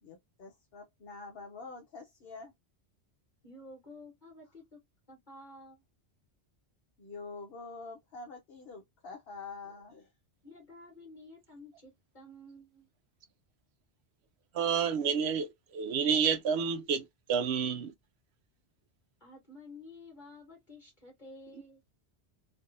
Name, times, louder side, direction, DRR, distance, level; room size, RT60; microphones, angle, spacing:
voice 1, 0.0-2.5 7.0-10.1, left 4 dB, 60° left, 0.9 m, -46 dB
voice 2, 3.4-4.8 5.1-5.8 10.4-12.9 19.2-21.8, left 2 dB, 45° left, 1.5 m, -51 dB
voice 3, 14.5-17.9, right 6 dB, 70° right, 0.8 m, -29 dB
3.3 x 2.6 x 2.6 m
omnidirectional pair, 1.2 m